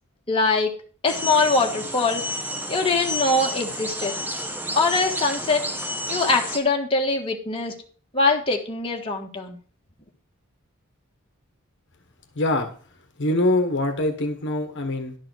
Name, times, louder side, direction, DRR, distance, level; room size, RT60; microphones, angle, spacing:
voice 1, 0.3-0.7 1.0-2.2 2.7-4.2 4.7-5.7 6.1-7.7 8.1-9.6, left 3 dB, 25° left, 0 dB, 1.4 m, -22 dB
sound 1, 1.1-6.6, equal, 10° right, 0.9 m, -30 dB
voice 2, 12.3-12.7 13.2-15.2, left 1 dB, 55° left, 6 dB, 1.2 m, -23 dB
11.5 x 4.8 x 6.1 m, 0.43 s
head